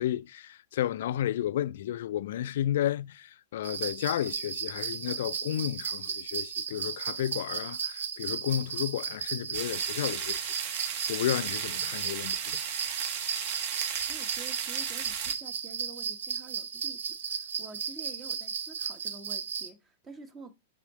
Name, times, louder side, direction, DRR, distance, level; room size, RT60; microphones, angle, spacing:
voice 1, 0.0-12.6, left 12 dB, 60° left, 0.4 m, -32 dB
sound 1, 3.6-19.7, right 7 dB, 65° right, 0.7 m, -35 dB
sound 2, 9.5-15.3, right 8 dB, 50° right, 1.1 m, -35 dB
voice 2, 14.1-20.5, right 4 dB, 20° right, 1.1 m, -49 dB
6.1 x 5.6 x 3.6 m
figure-of-eight pair, 100°, 0 cm